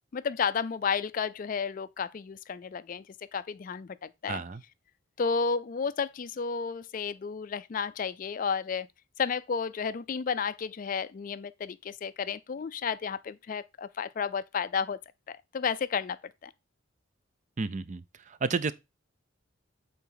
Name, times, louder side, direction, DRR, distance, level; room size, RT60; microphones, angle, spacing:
voice 1, 0.1-4.4 5.2-8.9 9.2-15.0 15.3-16.2 16.4-16.5, left 6 dB, 40° left, 0.3 m, -32 dB
voice 2, 4.3-4.6 17.6-18.7, right 4 dB, 35° right, 0.5 m, -32 dB
8.4 x 4.0 x 3.8 m
head